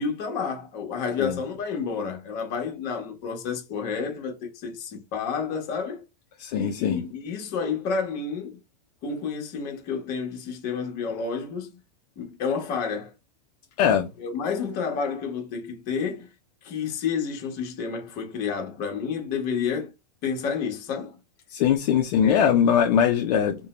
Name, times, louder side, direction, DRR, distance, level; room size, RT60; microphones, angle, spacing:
voice 1, 0.0-6.0 6.5-8.6 9.0-11.8 12.2-13.1 14.2-16.3 16.6-19.9 20.2-21.2 22.2-22.5, left 5 dB, 45° left, 1.1 m, -30 dB
voice 2, 6.4-7.0 13.8-14.1 21.5-23.6, left 8 dB, 70° left, 0.5 m, -21 dB
2.5 x 2.2 x 2.9 m
supercardioid pair, 130°, 21 cm